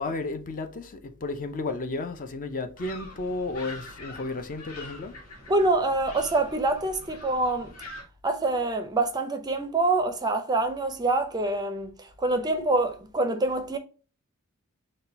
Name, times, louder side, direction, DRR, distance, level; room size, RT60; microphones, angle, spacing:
voice 1, 0.0-5.2, left 3 dB, 40° left, 0.4 m, -33 dB
sound 1, 2.8-8.0, left 2 dB, 65° left, 1.6 m, -44 dB
voice 2, 5.5-7.7 8.2-13.8, right 2 dB, 20° right, 0.5 m, -26 dB
4.1 x 2.2 x 4.0 m
head